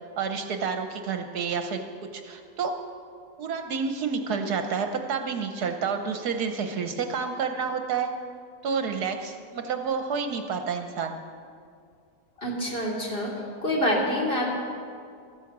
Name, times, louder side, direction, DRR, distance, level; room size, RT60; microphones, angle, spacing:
voice 1, 0.2-1.8 2.1-2.7 3.4-8.1 8.6-11.2, right 5 dB, 70° right, 6 dB, 1.3 m, -29 dB
voice 2, 12.4-13.3 13.6-14.6, equal, 35° left, -4 dB, 3.2 m, -26 dB
14.5 x 10.5 x 7.2 m, 2.3 s
omnidirectional pair, 1.9 m